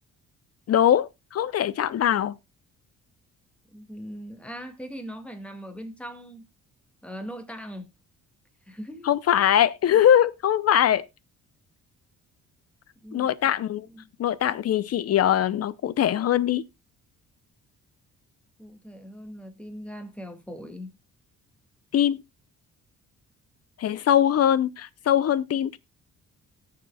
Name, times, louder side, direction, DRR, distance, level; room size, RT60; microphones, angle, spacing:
voice 1, 0.7-2.4 9.1-11.1 13.1-13.9 14.2-16.6 21.9-22.2 23.8-25.8, left 10 dB, 55° left, 0.7 m, -22 dB
voice 2, 3.7-6.5 7.0-7.9 8.7-9.1 13.0-13.6 13.8-14.1 18.6-21.0, equal, 5° left, 2.0 m, -40 dB
18.0 x 6.7 x 2.3 m
cardioid pair, 90°, 30 cm